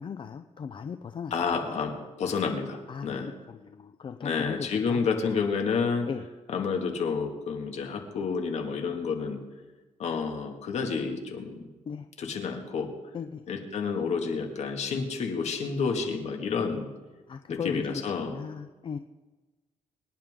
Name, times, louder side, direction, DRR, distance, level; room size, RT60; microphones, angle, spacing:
voice 1, 0.0-1.8 2.9-5.4 6.0-6.2 11.9-12.1 13.1-13.4 17.3-19.0, left 6 dB, 45° left, 8 dB, 0.6 m, -38 dB
voice 2, 1.3-3.3 4.2-6.1 6.5-9.4 10.0-11.6 12.2-12.9 13.5-16.9 17.5-18.4, left 5 dB, 65° left, 4 dB, 2.2 m, -30 dB
24.5 x 10.5 x 3.8 m, 1.2 s
cardioid pair, 115°, 12 cm